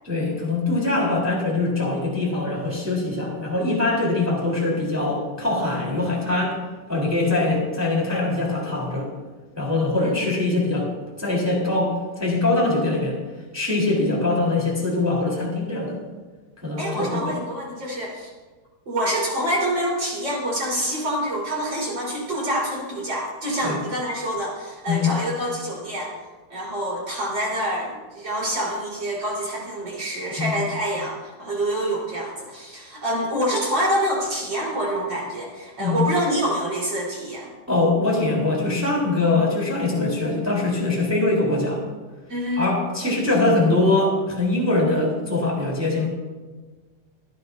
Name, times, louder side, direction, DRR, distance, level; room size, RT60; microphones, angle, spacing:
voice 1, 0.0-6.6 6.9-9.1 9.5-10.9 11.2-13.2 13.5-16.0 16.6-17.3 23.6-23.8 24.8-25.2 30.4-30.6 35.8-36.1 37.7-41.8 42.6-46.1, left 2 dB, 5° right, -4 dB, 2.8 m, -22 dB
voice 2, 16.8-18.3 18.9-26.1 26.5-37.5 42.3-42.7, right 1 dB, 25° right, -4 dB, 4.4 m, -26 dB
26.5 x 10.5 x 2.7 m, 1.3 s
omnidirectional pair, 5.5 m